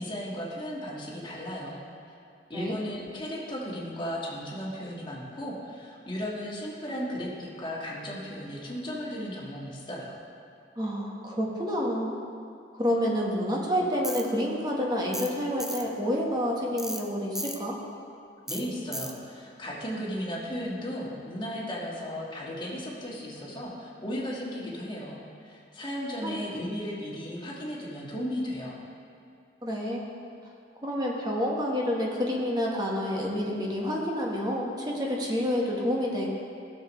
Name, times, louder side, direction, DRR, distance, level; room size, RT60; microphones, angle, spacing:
voice 1, 0.0-1.8 2.5-10.2 18.5-28.8, equal, 25° left, -4 dB, 1.6 m, -35 dB
voice 2, 10.8-12.1 12.7-17.8 26.2-26.3 29.6-30.1 30.8-36.3, equal, 25° right, -2 dB, 1.2 m, -28 dB
Tools, 14.0-14.2 15.1-15.3 15.6-15.8 16.8-17.0 17.3-17.6 18.5-18.6 18.9-19.1, equal, ahead, 0.4 m, -34 dB
15.5 x 6.9 x 3.1 m, 2.5 s
head